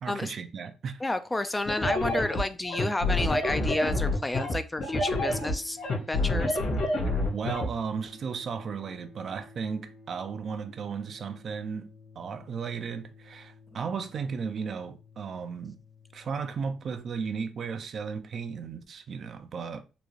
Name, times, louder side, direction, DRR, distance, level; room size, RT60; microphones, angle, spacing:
voice 1, 0.0-1.0 7.3-15.8 16.1-19.8, right 6 dB, 55° right, 0.5 m, -35 dB
voice 2, 1.0-5.8 6.1-6.6, left 2 dB, 15° left, 0.4 m, -30 dB
sound 1, 1.7-7.7, left 2 dB, 65° left, 1.6 m, -27 dB
sound 2, 4.9-17.0, left 2 dB, 80° left, 1.6 m, -53 dB
3.9 x 2.3 x 3.1 m
cardioid pair, 90°, 0 cm